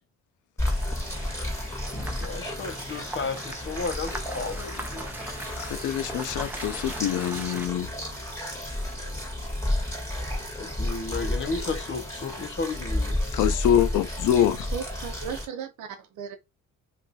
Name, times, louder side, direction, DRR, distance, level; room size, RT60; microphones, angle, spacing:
Stream with Pitch Change, 0.6-15.5, left 1 dB, 10° left, 1.6 m, -32 dB
Car Driveby Volvo Saloon Puddles-Mud-Gravel, 0.6-7.7, right 1 dB, 5° right, 0.8 m, -40 dB
voice 1, 2.2-5.1 10.6-13.2, left 4 dB, 40° left, 0.9 m, -33 dB
voice 2, 5.6-7.9 13.3-14.7, left 10 dB, 80° left, 0.5 m, -25 dB
voice 3, 14.7-16.4, right 7 dB, 85° right, 0.9 m, -36 dB
2.6 x 2.6 x 4.0 m
cardioid pair, 90°, 30 cm